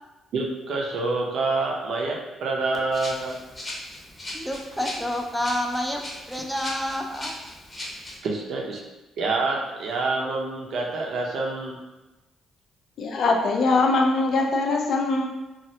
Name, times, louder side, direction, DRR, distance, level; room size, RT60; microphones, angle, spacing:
voice 1, 0.3-3.4 8.2-8.8 9.2-11.8, right 3 dB, 75° right, 0 dB, 0.6 m, -27 dB
Rattle (instrument), 2.9-8.2, left 1 dB, 30° left, 0.8 m, -38 dB
voice 2, 4.3-6.0 6.3-7.3, left 1 dB, ahead, 1 dB, 0.4 m, -28 dB
voice 3, 13.0-15.3, left 3 dB, 65° left, 2 dB, 0.4 m, -22 dB
3.1 x 2.4 x 2.8 m, 1.1 s
cardioid pair, 90°, 0 cm